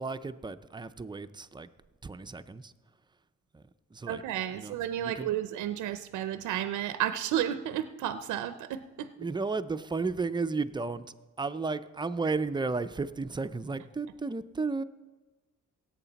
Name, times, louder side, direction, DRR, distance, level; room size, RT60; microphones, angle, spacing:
voice 1, 0.0-1.7 2.0-2.7 3.5-3.6 3.9-4.2 4.5-5.3 9.2-14.8, right 4 dB, 15° right, 12 dB, 0.5 m, -33 dB
voice 2, 4.1-9.1, right 11 dB, 80° right, 11 dB, 0.6 m, -32 dB
17.0 x 8.1 x 4.1 m, 1.2 s
cardioid pair, 90°, 30 cm